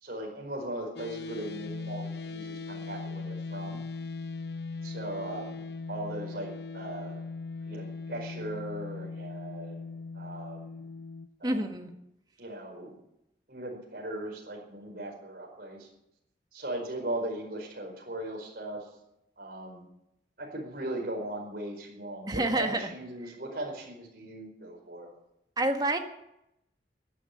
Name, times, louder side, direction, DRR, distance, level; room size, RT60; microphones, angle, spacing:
voice 1, 0.0-3.8 4.8-7.2 7.7-9.9 10.1-10.8 11.4-11.6 12.4-13.0 13.5-15.9 16.5-18.8 19.4-19.8 20.4-25.1, right 1 dB, 55° right, 0 dB, 4.9 m, -38 dB
sound 1, 1.0-11.3, left 4 dB, 65° left, 0.8 m, -39 dB
voice 2, 11.4-11.9 22.3-22.9 23.2-23.3 25.6-26.0, right 1 dB, 20° right, 5 dB, 1.5 m, -28 dB
15.5 x 10.0 x 8.7 m, 0.83 s
head